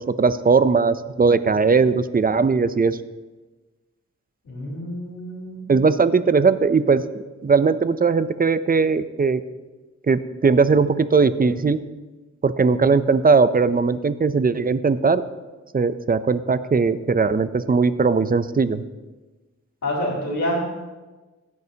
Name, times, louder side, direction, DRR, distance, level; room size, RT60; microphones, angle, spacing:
voice 1, 0.0-3.0 5.7-7.0 7.4-9.4 10.1-11.8 12.4-15.2 15.7-18.8, right 4 dB, 30° right, 14 dB, 0.5 m, -19 dB
voice 2, 4.4-5.7 19.8-20.6, equal, 65° left, -9 dB, 3.9 m, -27 dB
16.5 x 9.3 x 2.8 m, 1.2 s
cardioid pair, 75°, 30 cm